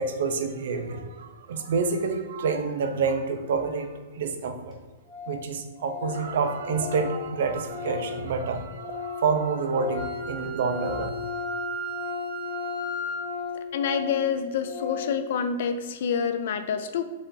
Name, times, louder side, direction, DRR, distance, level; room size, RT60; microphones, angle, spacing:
voice 1, 0.0-4.8 5.3-11.1, right 4 dB, 60° right, 6 dB, 0.5 m, -28 dB
Organ, 4.1-4.2 4.4-4.5 4.7-4.8 5.1-5.4 5.7-9.3 9.6-15.2, left 6 dB, 20° left, 0.7 m, -36 dB
Wind instrument woodwind instrument, 9.9-13.3, right 2 dB, 85° left, 1.0 m, -36 dB
voice 2, 13.7-17.0, left 7 dB, 50° left, 9 dB, 0.3 m, -27 dB
4.8 x 2.6 x 3.8 m, 1.3 s
hypercardioid pair, 170°, 0 cm